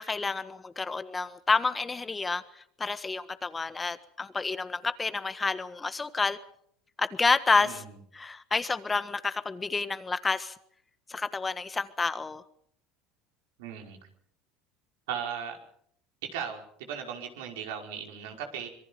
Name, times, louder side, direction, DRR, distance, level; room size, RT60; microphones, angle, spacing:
voice 1, 0.0-2.4 2.8-6.4 7.0-7.8 8.1-10.5 11.1-12.4, left 4 dB, 15° left, 11 dB, 1.4 m, -29 dB
voice 2, 7.6-7.9 13.6-14.0 15.1-15.6 16.2-18.7, right 8 dB, 85° right, 2 dB, 5.2 m, -37 dB
26.0 x 22.5 x 5.5 m, 0.67 s
supercardioid pair, 120°, 0 cm